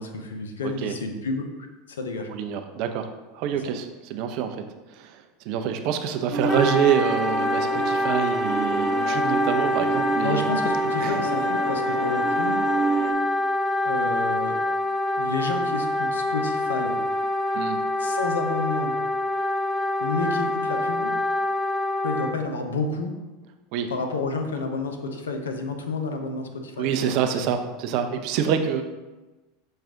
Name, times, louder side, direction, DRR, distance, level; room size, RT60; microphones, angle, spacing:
voice 1, 0.0-1.5 1.9-2.3 3.5-3.7 10.2-12.6 13.8-14.6 15.2-17.0 18.0-19.0 20.0-21.1 22.0-23.1 23.9-27.6, left 3 dB, 75° left, 5 dB, 0.6 m, -30 dB
voice 2, 2.3-3.1 3.3-4.6 4.9-10.4 11.0-11.2 17.5-17.8 23.7-23.9 26.8-28.8, right 8 dB, 50° right, 7 dB, 0.4 m, -26 dB
sound 1, 6.3-13.1, right 5 dB, 35° right, 0.8 m, -29 dB
Wind instrument woodwind instrument, 6.5-22.4, left 1 dB, 15° left, 0.4 m, -26 dB
6.2 x 2.4 x 3.6 m, 1.1 s
figure-of-eight pair, 80°, 0 cm